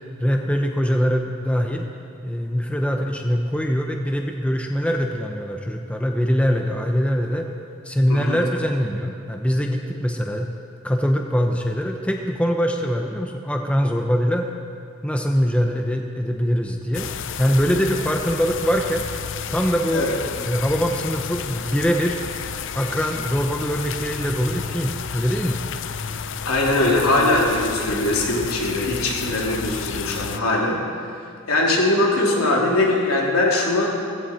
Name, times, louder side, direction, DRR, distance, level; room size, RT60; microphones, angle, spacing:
voice 1, 0.2-1.9 2.2-7.5 7.8-10.5 10.8-14.5 15.0-17.1 17.4-19.1 19.5-20.1 20.5-22.2 22.7-25.6, equal, 5° left, 2 dB, 0.8 m, -23 dB
voice 2, 8.1-8.4 19.9-20.1 26.4-30.8 31.5-33.9, left 2 dB, 85° left, -2 dB, 3.0 m, -21 dB
sound 1, 16.9-30.4, left 7 dB, 60° left, 0.5 m, -31 dB
17.0 x 15.5 x 4.4 m, 2.5 s
head